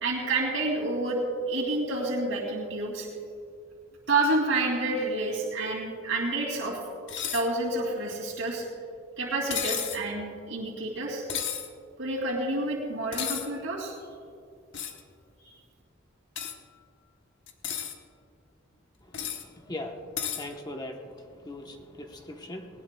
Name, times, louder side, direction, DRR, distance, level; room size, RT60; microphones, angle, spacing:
voice 1, 0.0-1.2 1.5-3.1 4.1-6.8 7.3-8.6 9.2-11.2 12.0-13.9 15.4-15.5, right 2 dB, 75° right, -3 dB, 2.6 m, -29 dB
sound 1, 7.1-7.5 9.5-10.0 11.3-11.7 13.1-13.5 14.7-15.0 16.3-16.5 17.5-17.9 19.1-19.4 20.2-20.4, left 8 dB, 65° left, 1.0 m, -32 dB
voice 2, 20.4-21.0 21.4-22.7, left 1 dB, 20° left, 3 dB, 0.9 m, -39 dB
19.0 x 19.0 x 2.3 m, 2.3 s
head